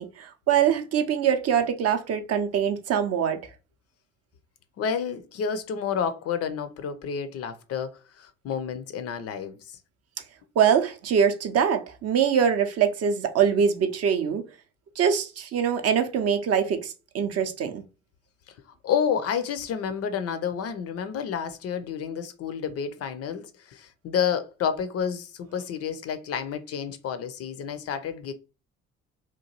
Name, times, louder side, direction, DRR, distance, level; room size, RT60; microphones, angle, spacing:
voice 1, 0.0-3.4 10.6-14.4 15.0-17.8, right 7 dB, 40° right, 0.5 m, -23 dB
voice 2, 4.8-9.6 18.8-28.3, left 7 dB, 40° left, 0.4 m, -30 dB
2.8 x 2.2 x 2.8 m
hypercardioid pair, 55°, 37 cm